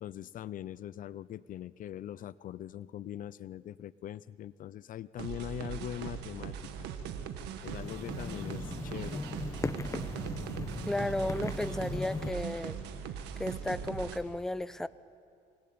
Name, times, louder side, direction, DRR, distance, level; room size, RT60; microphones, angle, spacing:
voice 1, 0.0-6.9 7.6-9.3, left 11 dB, 55° left, 18 dB, 0.6 m, -42 dB
sound 1, 5.2-14.2, right 8 dB, 90° right, 1.8 m, -40 dB
sound 2, 7.7-12.3, left 3 dB, 20° left, 1.1 m, -38 dB
voice 2, 10.9-12.8 13.4-14.9, left 1 dB, 5° left, 15 dB, 0.6 m, -34 dB
27.5 x 19.5 x 8.6 m, 2.4 s
cardioid pair, 110°, 17 cm